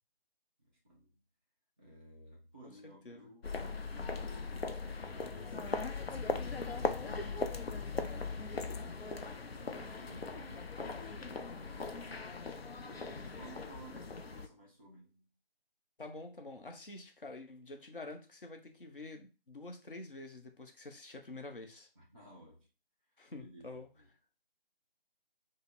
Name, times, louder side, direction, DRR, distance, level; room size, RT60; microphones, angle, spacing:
voice 1, 0.6-1.2 1.8-9.2 9.5-12.5 12.8-15.3 22.0-22.7 23.4-24.1, right 1 dB, 10° left, 0.6 m, -56 dB
sound 1, 3.4-14.5, left 4 dB, 75° left, 0.7 m, -39 dB
voice 2, 16.0-21.9 23.2-23.9, left 2 dB, 60° left, 1.0 m, -48 dB
5.2 x 2.1 x 4.0 m
figure-of-eight pair, 160°, 30 cm